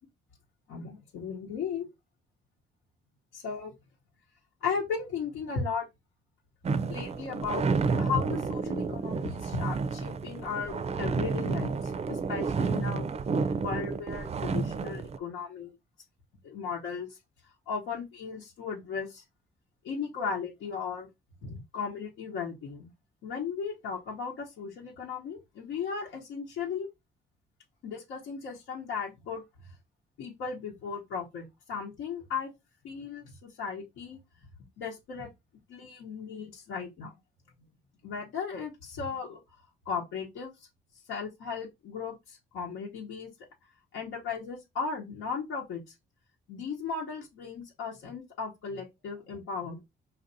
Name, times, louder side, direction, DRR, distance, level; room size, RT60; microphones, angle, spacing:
voice 1, 0.7-1.9 3.3-3.7 4.6-5.9 6.9-7.7 7.9-13.1 13.6-15.7 16.4-17.2 17.7-19.2 19.8-21.1 21.4-22.9 23.2-26.9 27.8-29.4 30.2-32.5 32.8-34.2 34.8-35.3 35.7-37.1 38.0-39.4 39.8-40.5 41.1-43.3 43.9-45.9 46.5-49.8, left 5 dB, 85° left, 1.0 m, -36 dB
sound 1, 6.6-15.2, right 4 dB, 35° right, 0.4 m, -30 dB
5.4 x 2.6 x 2.7 m
cardioid pair, 90°, 20 cm